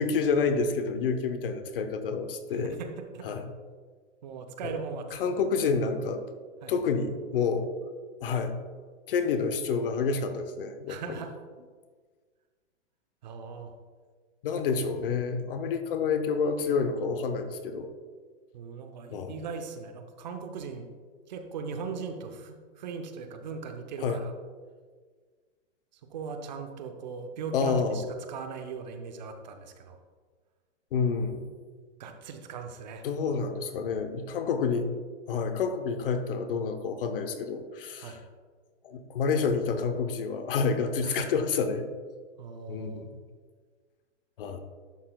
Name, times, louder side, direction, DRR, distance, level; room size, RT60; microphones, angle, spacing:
voice 1, 0.0-2.8 3.2-3.5 4.6-4.7 5.2-6.2 6.7-7.7 8.2-8.6 9.1-11.0 14.4-17.9 19.1-19.4 24.0-24.2 27.5-28.0 30.9-31.5 33.0-34.9 35.3-38.2 38.8-41.9 42.7-43.2 44.4-44.6, left 5 dB, 50° left, 8 dB, 0.7 m, -28 dB
voice 2, 2.5-3.3 4.2-5.2 6.6-6.7 10.9-11.3 13.2-13.7 18.5-20.9 21.3-24.3 26.1-30.0 32.0-33.0 38.0-38.2 41.0-41.3 42.4-43.1, right 5 dB, 40° right, 6 dB, 0.6 m, -39 dB
11.0 x 5.7 x 2.2 m, 1.5 s
hypercardioid pair, 160°, 36 cm